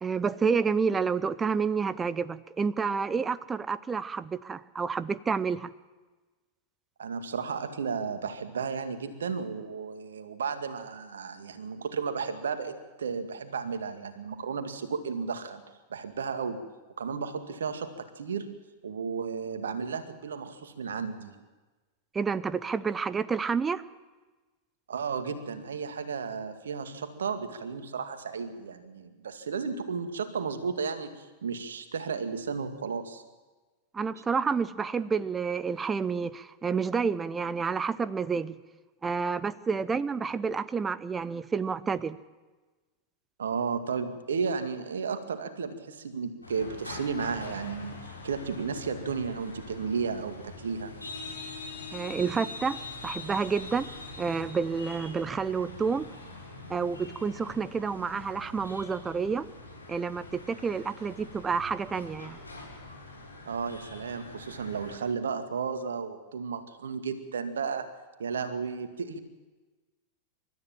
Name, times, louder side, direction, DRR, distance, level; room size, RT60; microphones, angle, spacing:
voice 1, 0.0-5.7 22.1-23.8 33.9-38.6 39.0-42.2 51.9-53.9 54.2-56.1 56.7-59.5 59.9-62.4, right 5 dB, 15° right, 17 dB, 0.8 m, -29 dB
voice 2, 7.0-15.6 15.9-16.6 17.0-18.5 18.8-21.4 24.9-33.2 43.4-50.9 63.5-67.9 68.2-69.2, right 5 dB, 65° right, 8 dB, 2.1 m, -33 dB
sound 1, 46.4-65.0, left 3 dB, 80° left, 6.6 m, -44 dB
28.5 x 13.5 x 7.4 m, 1.2 s
figure-of-eight pair, 90°, 0 cm